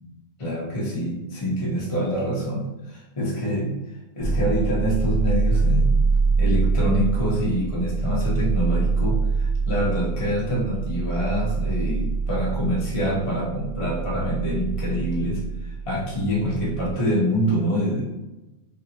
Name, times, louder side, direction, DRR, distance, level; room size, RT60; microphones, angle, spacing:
voice 1, 0.4-3.7 4.1-6.0 6.4-18.0, equal, 35° left, -6 dB, 0.5 m, -26 dB
sound 1, 4.2-16.9, right 4 dB, 45° right, 0.7 m, -25 dB
3.2 x 2.7 x 2.9 m, 1.1 s
omnidirectional pair, 2.2 m